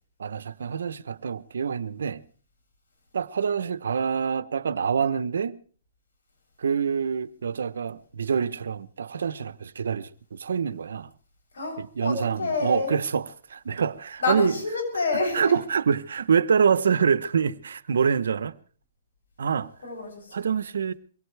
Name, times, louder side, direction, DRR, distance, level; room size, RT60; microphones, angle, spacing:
voice 1, 0.2-2.2 3.1-5.6 6.6-11.1 11.8-14.5 15.3-18.5 19.4-19.7 20.3-20.9, right 6 dB, 85° right, 0.8 m, -26 dB
voice 2, 11.5-12.9 14.2-15.6 19.8-20.3, left 3 dB, 90° left, 7.9 m, -28 dB
23.5 x 18.0 x 3.4 m
hypercardioid pair, 140°, 0 cm